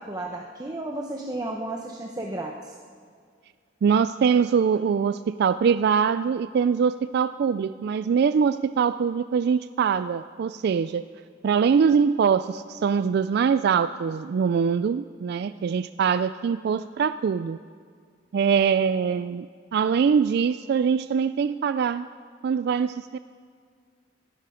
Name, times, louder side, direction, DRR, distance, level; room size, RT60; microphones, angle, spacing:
voice 1, 0.0-2.7, right 2 dB, 20° right, 1 dB, 0.9 m, -33 dB
voice 2, 3.8-11.0 11.4-17.6 18.3-19.5 19.7-22.1 22.4-23.2, right 6 dB, 55° right, 13 dB, 0.3 m, -23 dB
20.0 x 13.5 x 5.0 m, 2.1 s
head